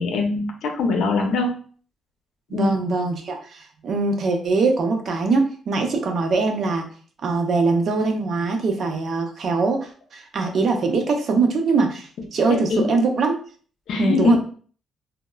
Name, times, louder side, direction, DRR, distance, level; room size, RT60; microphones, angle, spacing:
voice 1, 0.0-1.5 2.5-2.7 12.5-12.9 13.9-14.4, left 4 dB, 75° left, 3 dB, 0.6 m, -22 dB
voice 2, 2.5-6.9 7.2-13.4 14.0-14.4, right 3 dB, 60° right, 3 dB, 0.6 m, -22 dB
2.9 x 2.0 x 2.2 m, 0.43 s
cardioid pair, 90°, 0 cm